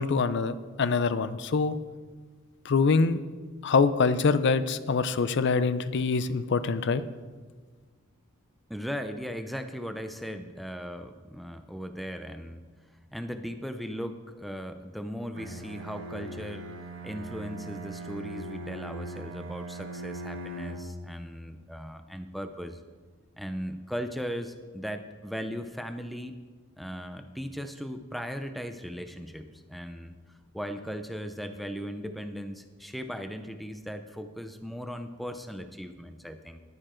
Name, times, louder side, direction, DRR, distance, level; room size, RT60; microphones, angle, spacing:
voice 1, 0.0-1.8 2.6-3.2 3.6-7.0, left 4 dB, 55° left, 13 dB, 0.5 m, -24 dB
voice 2, 8.7-12.7 13.1-16.7 17.0-22.8 23.4-26.4 26.8-30.2 30.5-36.6, equal, ahead, 8 dB, 0.4 m, -38 dB
Bowed string instrument, 15.3-21.0, right 2 dB, 65° right, 1.3 m, -40 dB
11.0 x 9.5 x 4.4 m, 1.4 s
head